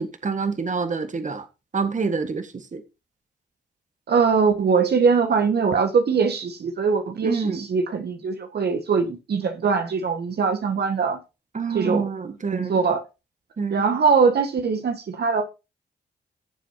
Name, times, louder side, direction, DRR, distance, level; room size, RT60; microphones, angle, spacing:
voice 1, 0.0-1.4 1.7-2.8 7.2-7.6 11.5-12.8 13.6-13.8, right 4 dB, 40° right, 1.6 m, -27 dB
voice 2, 4.1-11.2 11.7-12.1 12.5-13.0 13.7-15.4, right 5 dB, 60° right, 1.6 m, -22 dB
17.5 x 7.4 x 2.8 m
hypercardioid pair, 40°, 19 cm